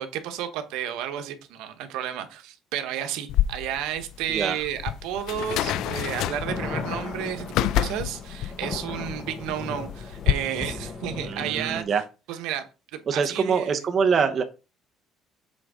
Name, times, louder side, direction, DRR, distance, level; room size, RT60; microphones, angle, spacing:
voice 1, 0.0-11.8 12.3-12.6 12.9-13.8, right 10 dB, 90° right, 1.1 m, -32 dB
sound 1, 3.3-10.3, left 13 dB, 70° left, 0.3 m, -28 dB
voice 2, 4.3-4.6 11.2-12.0 13.1-14.4, right 6 dB, 35° right, 0.8 m, -24 dB
sound 2, 5.4-11.8, left 4 dB, 30° left, 1.2 m, -36 dB
7.7 x 3.6 x 4.9 m
cardioid pair, 160°, 0 cm